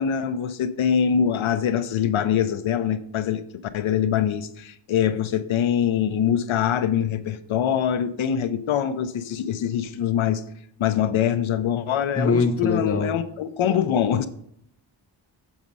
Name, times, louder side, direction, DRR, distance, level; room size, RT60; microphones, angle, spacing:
voice 1, 0.0-3.4 3.7-10.4 10.8-14.3, left 9 dB, 80° left, 11 dB, 0.6 m, -24 dB
voice 2, 12.2-13.1, left 4 dB, 30° left, 5 dB, 0.8 m, -22 dB
7.2 x 6.1 x 5.3 m, 0.70 s
wide cardioid pair, 175°, 47 cm